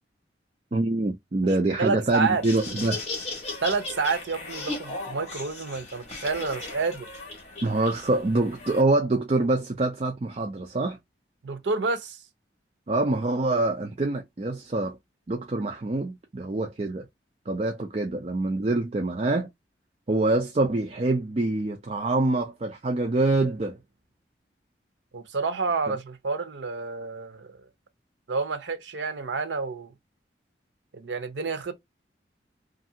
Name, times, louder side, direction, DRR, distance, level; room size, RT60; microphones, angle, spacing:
voice 1, 0.7-3.0 7.6-11.0 12.9-15.0 15.3-17.0 17.5-19.5 20.1-23.8, right 2 dB, 35° right, 0.4 m, -25 dB
voice 2, 1.8-2.4 3.6-7.1 11.4-12.2 25.1-27.6 28.3-29.9 30.9-31.7, right 4 dB, 85° right, 0.6 m, -29 dB
Laughter, 2.3-8.8, left 2 dB, 35° left, 1.1 m, -37 dB
2.7 x 2.5 x 2.6 m
head